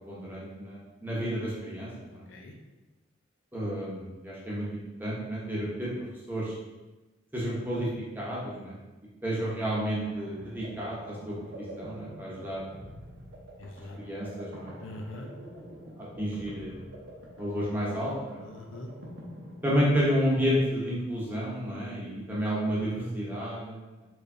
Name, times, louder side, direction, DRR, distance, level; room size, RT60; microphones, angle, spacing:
voice 1, 0.1-2.3 3.5-4.7 5.0-5.9 6.3-6.5 7.3-7.9 8.1-8.8 9.2-11.3 11.8-12.6 13.9-14.7 16.2-17.0 17.4-18.4 19.6-23.8, equal, 10° right, -6 dB, 0.9 m, -31 dB
voice 2, 7.4-7.8 13.6-14.0 14.8-15.3 18.4-18.9 23.0-23.1, left 1 dB, 85° left, 2 dB, 0.6 m, -41 dB
sound 1, 9.9-20.3, equal, 90° right, 1.0 m, -46 dB
4.5 x 3.2 x 2.6 m, 1.1 s
head